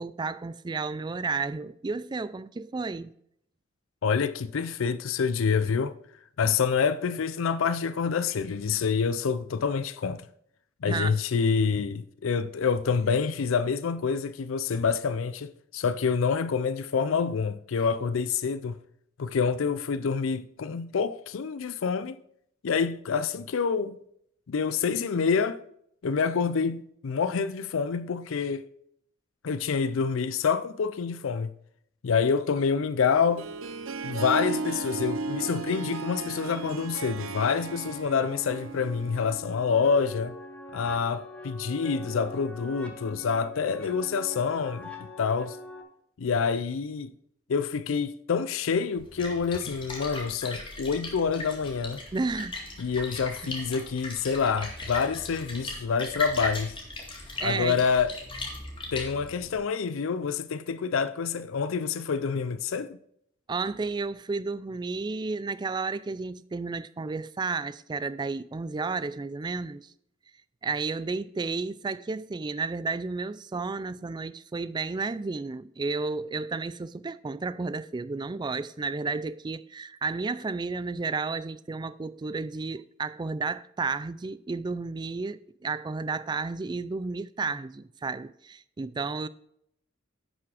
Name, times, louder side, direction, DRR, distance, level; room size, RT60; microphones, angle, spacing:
voice 1, 0.0-3.1 10.9-11.2 52.1-52.6 53.4-53.6 57.4-57.8 63.5-69.9 70.6-89.3, right 4 dB, 20° right, 0.3 m, -32 dB
voice 2, 4.0-5.9 6.4-10.2 10.8-18.8 19.2-22.2 22.6-24.0 24.5-25.6 26.0-28.6 29.4-31.5 32.0-33.5 34.0-40.3 40.7-45.6 46.2-47.1 47.5-52.0 52.8-56.7 57.4-58.2 58.9-63.0, left 5 dB, 75° left, 0.4 m, -27 dB
Harp, 33.0-39.6, right 3 dB, 80° right, 0.7 m, -35 dB
sound 1, 37.8-45.8, left 1 dB, 5° left, 1.3 m, -43 dB
Splash splatter, 49.0-59.6, left 2 dB, 25° left, 2.1 m, -38 dB
11.0 x 6.0 x 4.8 m
head